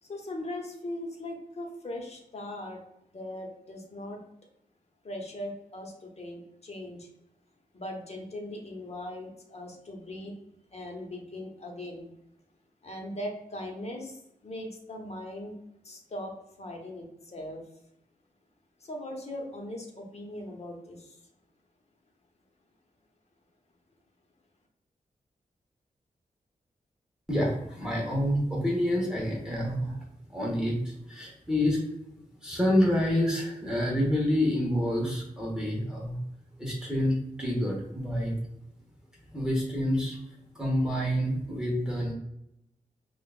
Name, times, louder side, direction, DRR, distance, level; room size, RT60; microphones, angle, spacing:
voice 1, 0.0-2.8 3.1-4.2 5.0-7.1 7.7-10.3 10.7-12.1 12.8-15.5 15.8-17.6 18.8-21.2, left 1 dB, 45° left, 1 dB, 1.1 m, -39 dB
voice 2, 27.3-30.0 30.3-31.8 32.4-36.2 36.6-38.4 39.3-40.2 40.5-42.1, equal, 5° right, -3 dB, 1.2 m, -28 dB
5.7 x 2.5 x 2.4 m, 0.83 s
cardioid pair, 75°, 15 cm